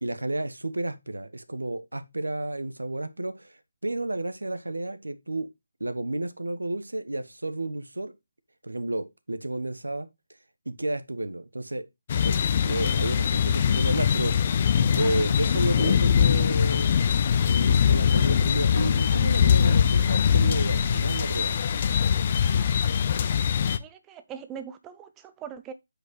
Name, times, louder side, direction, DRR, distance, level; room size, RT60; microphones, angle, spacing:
voice 1, 0.0-5.5 5.8-8.1 8.6-10.1 10.7-11.8 12.1-12.3 12.6-14.4 15.0-16.9 17.4-21.6, right 2 dB, 85° right, 1.1 m, -31 dB
sound 1, 12.1-23.8, left 7 dB, 35° left, 0.5 m, -22 dB
voice 2, 23.8-25.7, right 8 dB, 10° right, 0.4 m, -41 dB
8.0 x 5.1 x 3.1 m
figure-of-eight pair, 155°, 0 cm